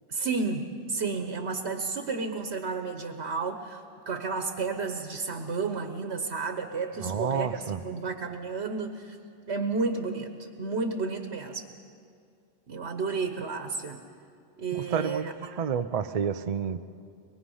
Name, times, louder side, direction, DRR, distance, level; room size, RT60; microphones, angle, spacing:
voice 1, 0.1-9.2 9.5-10.3 10.6-11.7 12.7-14.0 14.6-15.3, right 4 dB, 90° right, 6 dB, 1.4 m, -32 dB
voice 2, 7.0-7.8 14.7-16.8, right 7 dB, 45° right, 9 dB, 0.6 m, -30 dB
24.0 x 21.5 x 5.5 m, 2.4 s
omnidirectional pair, 1.1 m